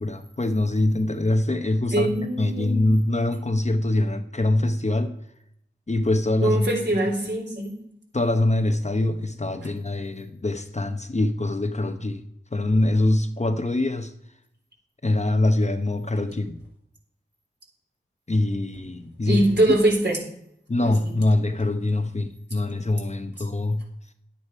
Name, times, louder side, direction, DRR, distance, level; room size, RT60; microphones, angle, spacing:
voice 1, 0.0-5.1 5.9-6.7 8.1-12.2 12.5-14.1 15.0-16.6 18.3-19.4 19.7-19.8 20.7-23.8, left 2 dB, 35° left, 0.9 m, -24 dB
voice 2, 1.9-2.8 6.4-7.7 19.3-20.2 20.8-21.1, right 1 dB, 55° right, 3.6 m, -23 dB
10.5 x 9.7 x 4.8 m
wide cardioid pair, 55°, 21 cm